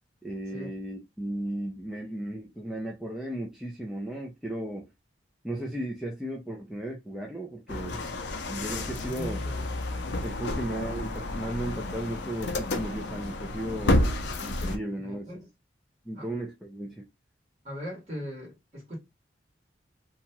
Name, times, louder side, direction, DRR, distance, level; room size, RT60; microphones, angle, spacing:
voice 1, 0.2-4.9 5.4-8.1 8.5-9.4 10.2-14.1 14.4-15.3 16.1-17.0, right 1 dB, ahead, 0.4 m, -35 dB
sound 1, 7.7-14.8, left 1 dB, 65° left, 0.5 m, -30 dB
voice 2, 9.1-9.6 15.0-15.5 16.1-16.3 17.6-19.0, equal, 35° right, 1.6 m, -39 dB
2.9 x 2.3 x 2.8 m
head